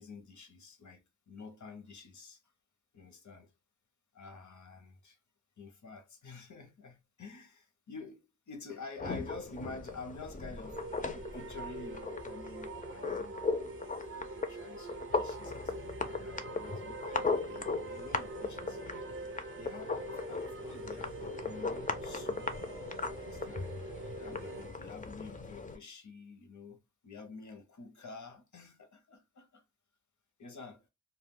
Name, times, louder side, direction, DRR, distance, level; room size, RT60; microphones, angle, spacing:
voice 1, 0.0-2.4 2.9-3.5 4.1-5.2 5.6-19.0 19.5-22.5 23.1-23.7 24.1-29.6 30.4-30.9, left 4 dB, 65° left, 0.7 m, -49 dB
sound 1, 9.0-25.8, left 4 dB, 25° left, 0.4 m, -38 dB
sound 2, 10.6-24.8, right 3 dB, 45° right, 0.4 m, -44 dB
2.2 x 2.2 x 3.5 m
wide cardioid pair, 65°, 32 cm